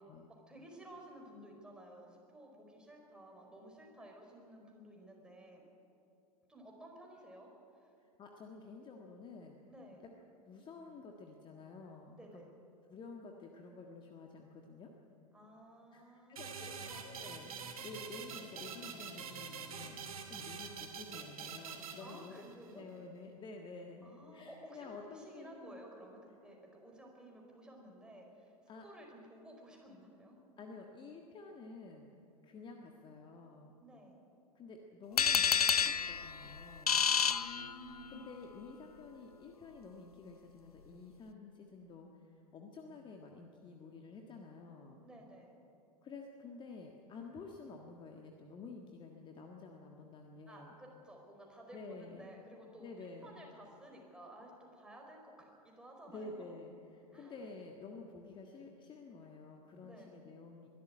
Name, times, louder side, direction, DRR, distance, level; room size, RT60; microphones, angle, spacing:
voice 1, 0.3-5.6 6.5-7.5 7.8-7.9 9.7-10.0 12.2-12.5 15.3-17.0 22.0-22.9 24.0-28.5 28.8-30.4 33.8-34.2 37.2-38.3 45.0-45.5 50.5-56.5 57.1-57.4 59.8-60.1, right 1 dB, 5° right, 0 dB, 4.7 m, -54 dB
voice 2, 8.0-9.6 10.4-12.4 12.9-14.9 15.9-17.5 17.8-22.3 22.7-25.8 28.7-28.9 30.6-32.1 32.4-33.7 34.5-37.1 38.1-45.0 46.0-50.7 51.7-52.3 52.8-53.4 56.1-60.7, left 4 dB, 25° left, 2 dB, 1.6 m, -51 dB
sound 1, 16.4-22.7, right 6 dB, 65° right, 2.4 m, -46 dB
sound 2, 35.2-38.2, left 6 dB, 80° left, 0.6 m, -30 dB
22.0 x 12.5 x 9.6 m, 2.9 s
figure-of-eight pair, 85°, 19 cm